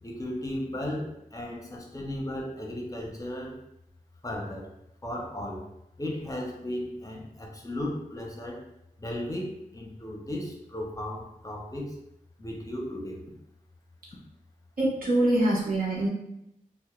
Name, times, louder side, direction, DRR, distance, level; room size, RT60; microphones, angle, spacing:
voice 1, 0.0-3.6 4.2-4.7 5.0-5.7 6.0-8.6 9.0-12.0 12.4-13.3, left 1 dB, 25° left, 0 dB, 0.6 m, -35 dB
voice 2, 14.8-16.1, right 1 dB, 75° right, -5 dB, 0.9 m, -24 dB
2.1 x 2.1 x 2.9 m, 0.83 s
cardioid pair, 50°, 15 cm